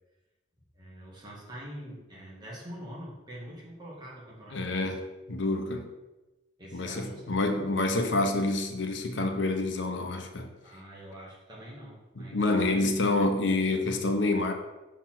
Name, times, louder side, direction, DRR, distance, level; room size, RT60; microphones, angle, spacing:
voice 1, 0.8-4.6 6.6-7.7 10.6-12.9, equal, 25° right, -5 dB, 2.0 m, -45 dB
voice 2, 4.5-5.0 5.3-5.8 6.7-10.5 12.2-14.5, left 2 dB, 75° left, 5 dB, 0.8 m, -27 dB
5.6 x 4.2 x 6.0 m, 1.1 s
head